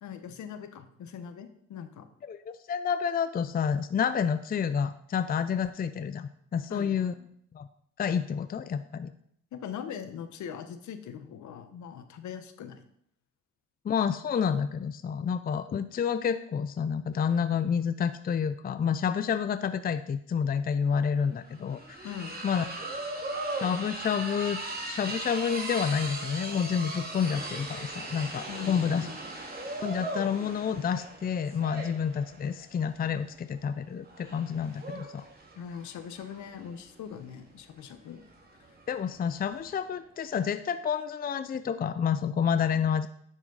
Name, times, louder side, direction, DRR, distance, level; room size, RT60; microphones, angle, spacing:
voice 1, 0.0-2.1 6.7-7.3 9.5-12.8 22.0-22.7 28.5-29.2 35.6-38.2, left 8 dB, 70° left, 9 dB, 1.1 m, -41 dB
voice 2, 2.7-7.1 7.5-7.7 8.0-9.1 13.8-22.1 22.4-22.7 23.6-24.6 24.9-29.1 29.8-35.3 38.9-43.1, left 7 dB, 30° left, 11 dB, 0.5 m, -29 dB
sound 1, 20.6-20.7 20.9-39.8, right 2 dB, 30° right, 2.2 m, -39 dB
10.5 x 6.3 x 4.0 m, 0.69 s
cardioid pair, 90°, 30 cm